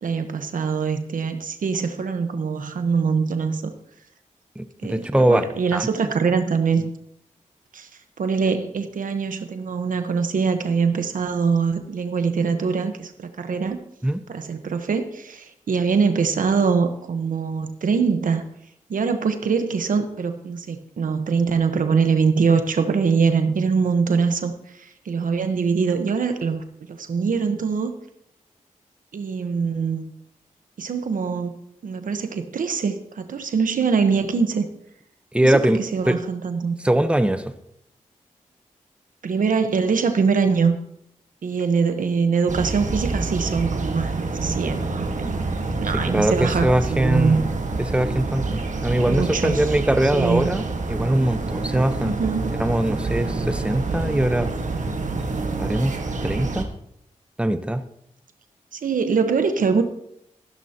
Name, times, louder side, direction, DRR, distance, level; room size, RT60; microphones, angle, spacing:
voice 1, 0.0-3.7 4.8-6.9 7.7-7.9 8.2-13.8 14.3-18.4 18.9-27.9 29.1-30.1 30.8-34.7 35.4-36.7 39.2-40.8 41.4-45.3 45.8-47.4 49.1-49.6 50.1-50.6 52.0-52.6 58.7-59.8, right 5 dB, 80° right, 8 dB, 1.2 m, -23 dB
voice 2, 4.6-5.5 5.7-5.9 14.0-14.2 35.3-35.8 36.0-36.2 36.8-37.5 46.1-47.5 47.8-52.2 52.6-54.5 55.6-56.7 57.4-57.8, right 1 dB, 10° right, 10 dB, 0.9 m, -21 dB
sound 1, 42.5-56.6, right 3 dB, 60° right, 1.6 m, -27 dB
15.0 x 12.0 x 3.0 m, 0.76 s
cardioid pair, 40°, 14 cm